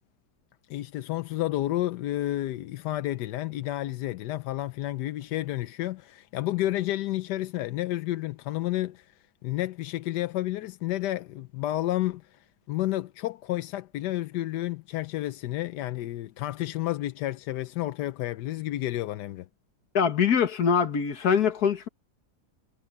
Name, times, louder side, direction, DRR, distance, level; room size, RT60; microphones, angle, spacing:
voice 1, 0.7-9.1 9.4-12.4 12.7-19.5, left 15 dB, 90° left, 1.2 m, -31 dB
voice 2, 19.9-21.9, left 7 dB, 70° left, 2.0 m, -23 dB
omnidirectional pair, 1.8 m